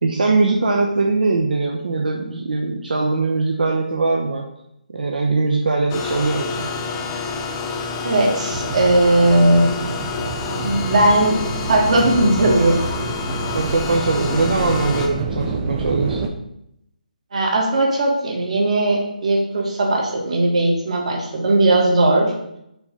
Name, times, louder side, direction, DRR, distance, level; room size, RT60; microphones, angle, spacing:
voice 1, 0.0-4.4 4.9-6.7 13.5-16.3, right 3 dB, 75° right, 0 dB, 0.9 m, -21 dB
sound 1, 5.9-15.1, left 4 dB, 15° left, 0.7 m, -28 dB
voice 2, 8.0-9.7 10.6-11.4 11.7-12.8 17.3-22.3, right 1 dB, 50° right, 0 dB, 1.7 m, -17 dB
sound 2, 8.5-16.3, right 4 dB, 15° right, 0.4 m, -28 dB
5.8 x 3.8 x 5.4 m, 0.78 s
hypercardioid pair, 170°, 5 cm